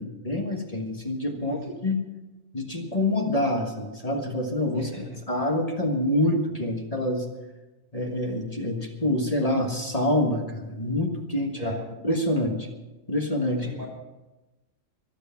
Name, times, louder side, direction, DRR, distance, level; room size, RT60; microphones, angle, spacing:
voice 1, 0.0-2.0 2.5-4.9 5.3-7.2 7.9-11.7 12.0-12.7 13.1-13.7, left 1 dB, 30° left, 2 dB, 1.6 m, -26 dB
voice 2, 1.4-1.7 4.7-5.5 11.5-11.9 13.6-13.9, left 2 dB, 85° right, -1 dB, 6.6 m, -39 dB
23.5 x 8.4 x 5.8 m, 1.1 s
omnidirectional pair, 1.4 m